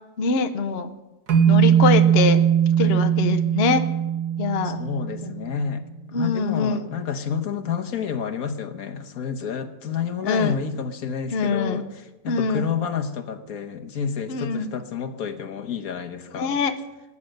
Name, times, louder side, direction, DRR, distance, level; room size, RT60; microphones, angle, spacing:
voice 1, 0.2-0.9 1.5-2.4 2.8-3.8 4.4-4.8 5.2-5.3 6.1-6.9 10.2-10.6 11.3-11.8 12.3-12.7 14.3-14.7 16.4-16.8, left 5 dB, 50° left, 8 dB, 0.9 m, -23 dB
sound 1, 1.3-5.6, right 9 dB, 75° right, 1.9 m, -20 dB
voice 2, 4.6-5.8 6.1-16.6, left 7 dB, 65° left, 6 dB, 1.5 m, -29 dB
19.0 x 9.9 x 6.5 m, 1.1 s
omnidirectional pair, 1.7 m